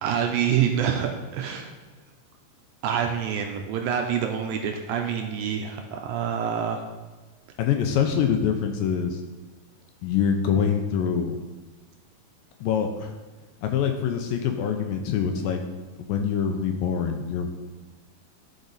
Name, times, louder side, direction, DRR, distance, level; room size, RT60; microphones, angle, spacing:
voice 1, 0.0-1.7 2.8-6.8, right 8 dB, 80° right, 3 dB, 2.2 m, -26 dB
voice 2, 7.6-9.2 10.0-11.4 12.6-13.1 13.6-15.6 16.0-17.5, left 7 dB, 80° left, 4 dB, 2.2 m, -25 dB
13.5 x 5.1 x 4.0 m, 1.3 s
omnidirectional pair, 4.5 m